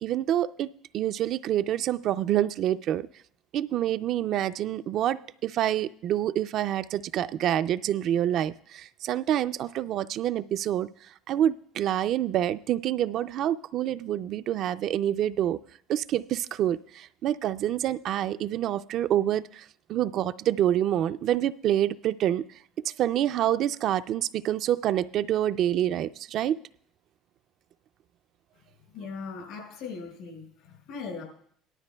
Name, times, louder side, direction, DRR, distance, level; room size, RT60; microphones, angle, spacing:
voice 1, 0.0-3.1 3.5-10.9 11.3-15.6 15.9-19.6 19.9-22.4 22.8-26.6, right 11 dB, 55° right, 12 dB, 0.3 m, -27 dB
voice 2, 28.9-31.2, left 5 dB, 75° left, -1 dB, 4.9 m, -39 dB
17.5 x 12.5 x 2.3 m, 0.64 s
supercardioid pair, 95°, 0 cm